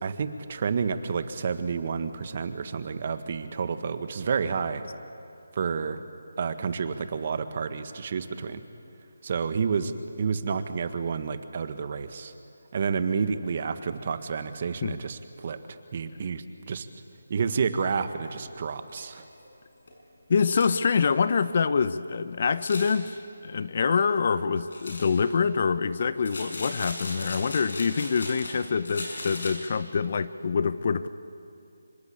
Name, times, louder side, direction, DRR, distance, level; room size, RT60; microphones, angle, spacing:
voice 1, 0.0-4.8 5.5-6.0 6.4-8.6 9.2-12.3 12.7-16.9 17.3-19.2, right 5 dB, 40° right, 10 dB, 1.6 m, -30 dB
sound 1, 18.2-18.3 18.9-19.0 19.4-19.5 19.9-20.0 20.6-21.0 22.5-23.0 24.7-25.2 26.2-28.6 28.8-29.5, left 2 dB, 65° left, 7.0 m, -38 dB
voice 2, 20.3-23.2 23.4-31.1, left 5 dB, 45° left, 14 dB, 0.9 m, -25 dB
26.5 x 24.0 x 8.6 m, 2.7 s
figure-of-eight pair, 160°, 0 cm